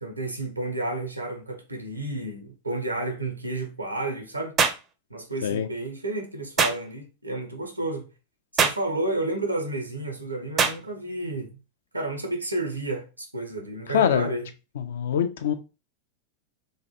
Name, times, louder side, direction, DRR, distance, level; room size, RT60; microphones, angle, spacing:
voice 1, 0.0-4.6 5.1-8.1 8.5-11.6 11.9-14.5, right 2 dB, 85° right, 0.6 m, -31 dB
sound 1, 4.6-4.9 6.6-6.8 8.6-8.9 10.6-10.8, right 5 dB, 25° right, 0.4 m, -22 dB
voice 2, 13.9-14.3 14.8-15.5, left 8 dB, 60° left, 0.3 m, -24 dB
3.2 x 2.3 x 2.7 m
figure-of-eight pair, 90°, 0 cm